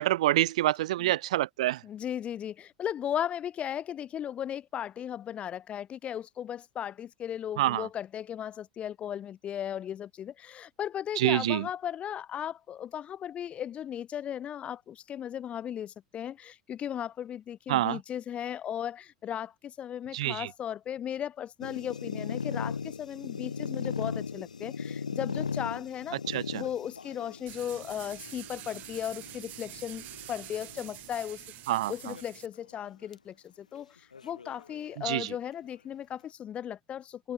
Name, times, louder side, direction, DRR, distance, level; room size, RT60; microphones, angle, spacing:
voice 1, 0.0-1.8 7.6-7.9 11.2-11.7 17.7-18.0 20.1-20.5 26.3-26.6 31.7-32.1 35.0-35.3, right 15 dB, 65° right, 0.6 m, -27 dB
voice 2, 1.8-26.2 26.5-31.4 31.9-37.3, left 10 dB, 30° left, 0.5 m, -36 dB
sound 1, 21.6-31.1 31.8-32.4 32.7-32.8 33.1-33.2 34.1-35.3, left 5 dB, 85° left, 0.6 m, -38 dB
sound 2, 27.5-32.5, right 17 dB, 45° right, 0.9 m, -46 dB
figure-of-eight pair, 85°, 4 cm